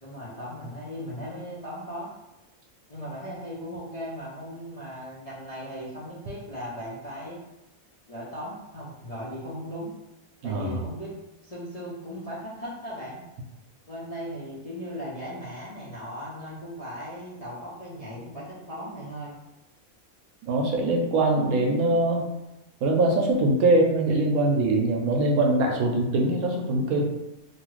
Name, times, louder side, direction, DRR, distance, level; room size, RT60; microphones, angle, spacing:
voice 1, 0.0-2.1 2.9-7.4 8.1-9.9 10.4-11.1 11.4-13.2 13.9-19.4, equal, 45° left, -9 dB, 0.5 m, -37 dB
voice 2, 10.4-10.7 20.4-22.3 22.8-27.1, right 2 dB, 80° right, 1 dB, 1.1 m, -22 dB
2.9 x 2.4 x 3.1 m, 0.95 s
omnidirectional pair, 1.5 m